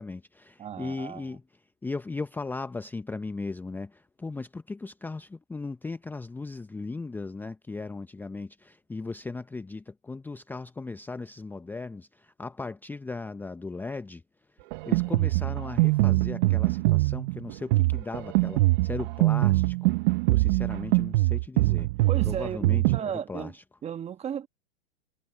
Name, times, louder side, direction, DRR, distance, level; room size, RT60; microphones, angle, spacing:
voice 1, 0.0-1.4 1.8-14.2 14.9-20.0 20.3-21.9 22.2-22.8 23.3-23.6, left 3 dB, 5° left, 0.8 m, -37 dB
voice 2, 0.6-1.4 22.1-23.5 23.8-24.5, right 8 dB, 20° right, 1.4 m, -35 dB
Drum kit, 14.7-23.0, right 21 dB, 50° right, 1.0 m, -23 dB
hypercardioid pair, 115°, 31 cm